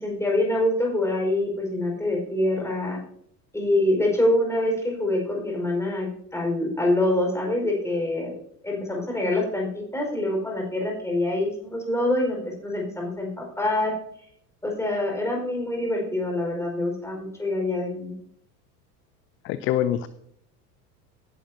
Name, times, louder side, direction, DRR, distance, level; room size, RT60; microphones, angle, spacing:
voice 1, 0.0-3.0 3.5-8.4 8.6-13.9 14.6-18.1, left 1 dB, 5° left, -1 dB, 4.6 m, -25 dB
voice 2, 19.4-20.1, left 11 dB, 25° left, 15 dB, 0.4 m, -24 dB
17.0 x 10.0 x 2.7 m, 0.69 s
figure-of-eight pair, 75°, 48 cm